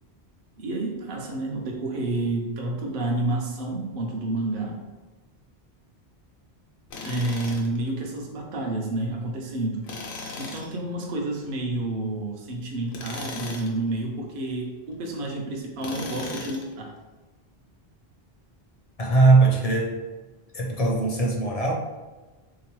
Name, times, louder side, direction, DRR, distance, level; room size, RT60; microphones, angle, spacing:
voice 1, 0.6-4.8 7.0-9.9 10.4-16.9, right 2 dB, 60° right, 0 dB, 0.7 m, -29 dB
Tools, 6.9-7.8 9.8-10.7 12.9-13.8 15.8-16.7, left 3 dB, 85° left, 0.9 m, -37 dB
voice 2, 19.0-20.0 20.5-21.7, right 3 dB, 45° left, -1 dB, 0.5 m, -20 dB
3.6 x 2.8 x 3.0 m, 1.2 s
omnidirectional pair, 1.1 m